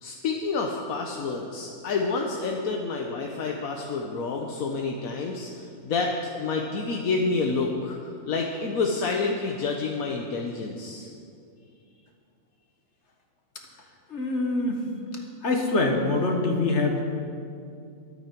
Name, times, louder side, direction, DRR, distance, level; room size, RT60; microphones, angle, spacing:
voice 1, 0.0-8.0 8.3-11.1, left 4 dB, 80° left, 1 dB, 1.4 m, -28 dB
voice 2, 14.1-14.8 15.4-17.0, left 2 dB, 55° left, 2 dB, 1.7 m, -24 dB
22.5 x 8.7 x 4.5 m, 2.5 s
omnidirectional pair, 1.5 m